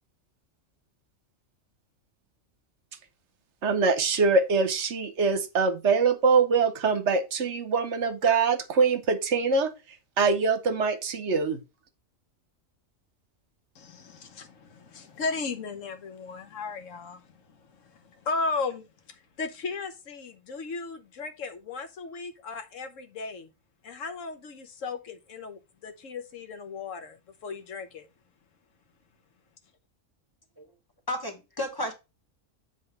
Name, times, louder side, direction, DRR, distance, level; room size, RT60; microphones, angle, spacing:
voice 1, 3.6-9.7 10.2-11.6, right 4 dB, 65° right, 1.1 m, -24 dB
voice 2, 13.8-17.2 18.2-18.9 19.4-23.5 23.8-27.2 27.4-28.1, left 4 dB, 75° left, 1.3 m, -35 dB
voice 3, 31.1-31.9, left 1 dB, 15° left, 1.4 m, -32 dB
7.7 x 3.5 x 5.3 m
omnidirectional pair, 1.3 m